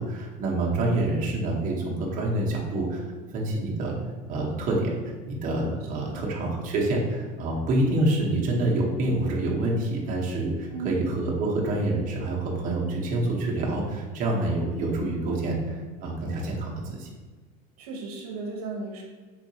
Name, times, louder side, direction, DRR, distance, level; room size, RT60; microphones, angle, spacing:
voice 1, 0.0-4.0 4.3-4.9 5.3-17.1, right 2 dB, 45° right, -3 dB, 0.8 m, -27 dB
voice 2, 1.5-2.2 5.9-6.3 10.7-11.1 17.8-19.0, right 3 dB, 90° right, -1 dB, 0.8 m, -37 dB
3.7 x 2.5 x 2.7 m, 1.4 s
supercardioid pair, 110°, 19 cm